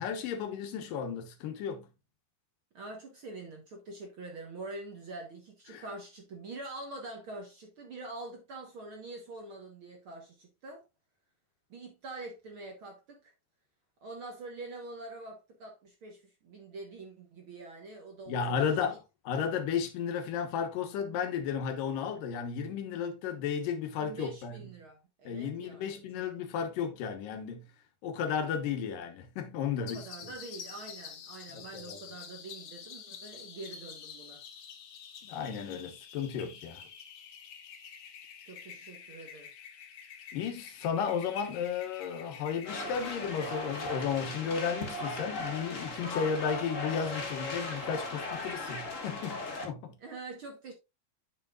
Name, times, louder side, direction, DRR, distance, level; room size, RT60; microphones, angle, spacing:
voice 1, 0.0-1.9 5.7-5.8 18.3-19.0 19.3-24.6 25.3-27.7 28.0-30.3 31.5-32.0 35.2-36.8 40.3-50.0, left 7 dB, 80° left, 2.8 m, -34 dB
voice 2, 2.7-10.8 11.7-13.3 14.0-18.6 18.9-19.0 24.0-26.3 29.8-34.4 38.4-39.5 50.0-50.7, right 2 dB, 55° right, 1.6 m, -45 dB
sound 1, 29.9-45.1, left 8 dB, 65° left, 2.1 m, -48 dB
sound 2, 42.6-49.7, left 2 dB, 35° left, 1.2 m, -38 dB
9.5 x 6.5 x 2.4 m
omnidirectional pair, 3.8 m